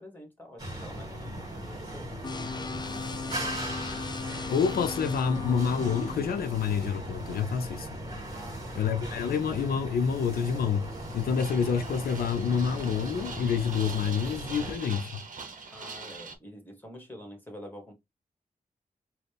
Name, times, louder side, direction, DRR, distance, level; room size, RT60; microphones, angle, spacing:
voice 1, 0.0-2.1 2.6-2.8 3.3-4.2 8.3-8.7 15.7-17.9, equal, 10° left, 1.6 m, -47 dB
sound 1, 0.6-14.7, right 1 dB, 25° right, 2.0 m, -38 dB
sound 2, 2.2-6.2, left 4 dB, 30° left, 0.4 m, -37 dB
voice 2, 4.5-7.9 8.7-15.2, left 6 dB, 85° left, 0.4 m, -28 dB
sound 3, 10.4-16.3, right 4 dB, 60° right, 0.8 m, -43 dB
4.1 x 2.2 x 3.3 m
cardioid pair, 65°, 15 cm